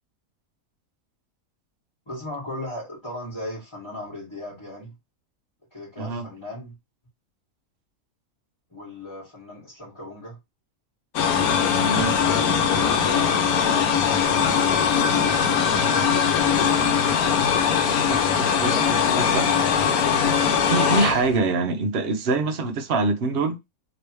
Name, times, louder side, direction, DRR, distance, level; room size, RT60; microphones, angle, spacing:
voice 1, 2.1-4.9 5.7-6.7 8.7-10.4 12.0-15.0 15.6-16.1 18.1-19.9, left 1 dB, 20° left, 1.7 m, -37 dB
sound 1, 11.1-21.4, left 7 dB, 85° left, 1.2 m, -21 dB
voice 2, 11.7-12.2 18.0-19.4 20.7-23.6, right 3 dB, 50° right, 0.8 m, -25 dB
3.3 x 3.0 x 3.0 m
omnidirectional pair, 1.5 m